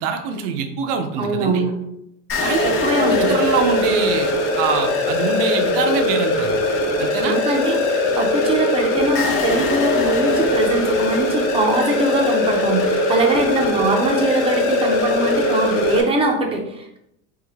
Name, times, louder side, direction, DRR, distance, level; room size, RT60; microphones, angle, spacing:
voice 1, 0.0-1.6 2.4-2.7 3.0-4.3 4.6-6.6 7.0-7.4, right 5 dB, 85° right, 5 dB, 0.7 m, -24 dB
voice 2, 1.2-1.8 2.6-3.4 7.2-17.0, right 2 dB, 15° right, 2 dB, 0.5 m, -22 dB
sound 1, 2.3-16.0, left 2 dB, 35° left, 0.7 m, -20 dB
3.7 x 3.1 x 3.4 m, 0.79 s
cardioid pair, 165°, 37 cm